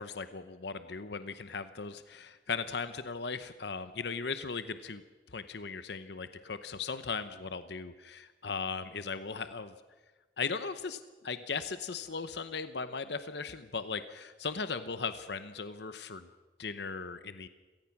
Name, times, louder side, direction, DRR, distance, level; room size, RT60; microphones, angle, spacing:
voice 1, 0.0-5.0 5.3-9.7 10.4-16.3 16.6-17.5, left 5 dB, 65° left, 11 dB, 0.9 m, -38 dB
26.0 x 18.0 x 6.0 m, 1.2 s
head